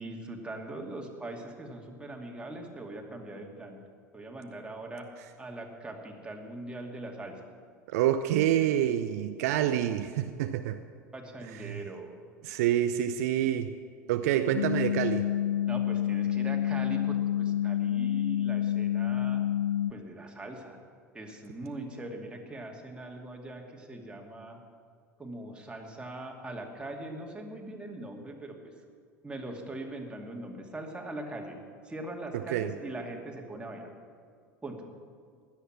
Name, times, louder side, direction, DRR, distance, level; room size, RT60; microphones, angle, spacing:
voice 1, 0.0-3.8 4.1-5.1 5.4-7.4 11.1-12.1 14.4-14.5 15.7-19.4 19.9-20.8 21.1-24.6 25.2-28.7 29.2-31.6 31.8-33.9 34.6-34.9, right 2 dB, 10° right, 1 dB, 2.4 m, -41 dB
voice 2, 7.9-10.8 11.5-11.8 12.4-13.7 14.1-15.2 32.5-32.7, right 11 dB, 60° right, 9 dB, 0.7 m, -27 dB
sound 1, 14.5-19.9, left 11 dB, 75° left, 0.5 m, -28 dB
16.0 x 11.5 x 6.1 m, 2.1 s
figure-of-eight pair, 75°, 9 cm